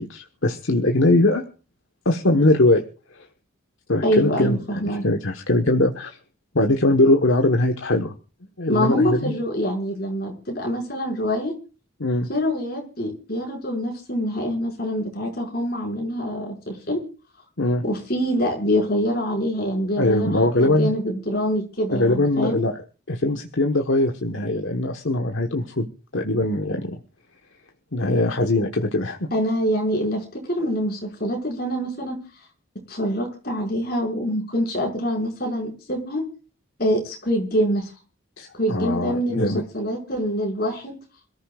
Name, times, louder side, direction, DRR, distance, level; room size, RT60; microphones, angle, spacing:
voice 1, 0.0-1.4 2.0-2.8 3.9-6.2 6.5-8.1 8.6-9.3 12.0-12.3 17.6-17.8 20.0-20.9 21.9-22.8 23.1-25.9 26.1-27.0 27.9-29.3 38.7-39.6, left 2 dB, 75° left, 4 dB, 1.4 m, -21 dB
voice 2, 4.0-5.0 8.7-11.5 12.3-17.0 17.8-22.6 29.3-32.2 32.9-36.2 36.8-37.9 38.5-40.9, equal, 50° left, 1 dB, 5.8 m, -25 dB
27.0 x 14.0 x 2.4 m, 0.37 s
head